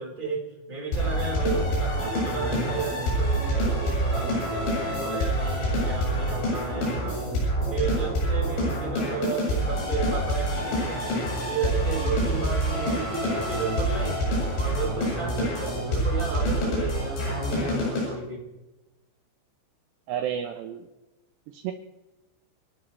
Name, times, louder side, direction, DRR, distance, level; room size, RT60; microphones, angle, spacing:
voice 1, 0.0-7.2 7.7-11.1 11.5-14.2 14.5-18.4, right 4 dB, 10° right, -2 dB, 3.8 m, -33 dB
sound 1, 0.9-18.1, equal, 75° left, 10.5 m, -26 dB
voice 2, 20.1-20.9 21.5-21.7, right 9 dB, 75° right, 6 dB, 2.8 m, -31 dB
29.5 x 12.5 x 3.2 m, 1.0 s
omnidirectional pair, 5.5 m